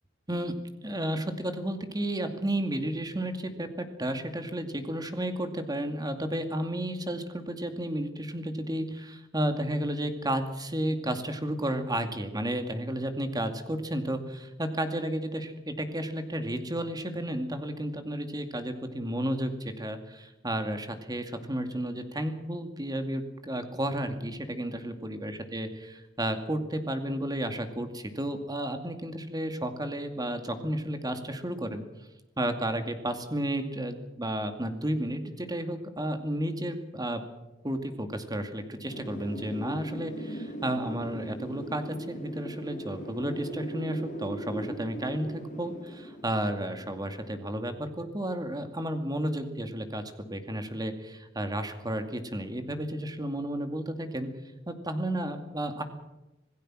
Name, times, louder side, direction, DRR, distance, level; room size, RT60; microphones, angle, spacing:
voice 1, 0.8-31.8 32.4-37.2 37.6-54.3 54.7-55.8, right 1 dB, 20° right, 7 dB, 2.3 m, -32 dB
Wind, 38.9-47.6, right 1 dB, 40° left, 3.3 m, -39 dB
26.5 x 17.5 x 6.3 m, 0.99 s
head